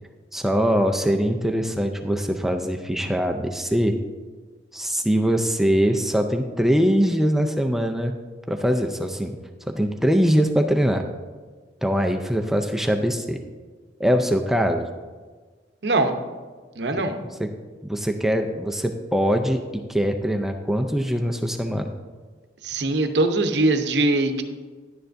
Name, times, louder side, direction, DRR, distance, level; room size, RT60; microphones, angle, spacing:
voice 1, 0.3-4.0 4.7-8.1 8.5-9.4 9.7-11.0 11.8-13.4 14.0-14.8 17.4-17.5 17.8-21.8, equal, ahead, 4 dB, 0.4 m, -22 dB
voice 2, 15.8-16.1 16.8-17.2 22.6-24.4, right 2 dB, 65° right, 7 dB, 0.8 m, -21 dB
11.0 x 9.2 x 2.6 m, 1.4 s
head